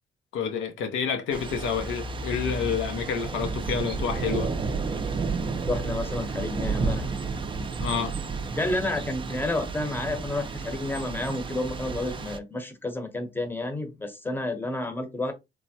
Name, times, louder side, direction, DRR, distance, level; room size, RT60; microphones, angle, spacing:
voice 1, 0.3-4.5 7.8-8.2, left 6 dB, 85° left, 0.6 m, -29 dB
Thunder / Rain, 1.3-12.4, right 4 dB, 25° right, 0.4 m, -31 dB
voice 2, 5.7-7.1 8.6-15.3, left 2 dB, 10° left, 0.8 m, -30 dB
3.3 x 2.0 x 2.7 m
cardioid pair, 90°, 20 cm